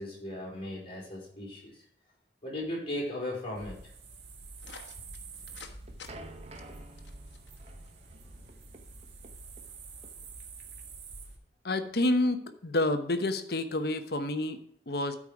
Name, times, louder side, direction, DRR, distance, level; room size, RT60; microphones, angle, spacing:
voice 1, 0.0-1.8 2.4-3.8, left 1 dB, 30° left, -4 dB, 4.5 m, -37 dB
sound 1, 3.5-11.4, right 3 dB, 85° right, 1.8 m, -47 dB
sound 2, 4.6-5.7 6.0-6.1 6.6-7.9, left 5 dB, 85° left, 1.3 m, -49 dB
sound 3, 5.4-12.3, right 2 dB, 35° right, 1.0 m, -52 dB
voice 2, 11.6-15.1, left 1 dB, 60° left, 9 dB, 1.0 m, -29 dB
12.5 x 5.1 x 4.8 m, 0.66 s
head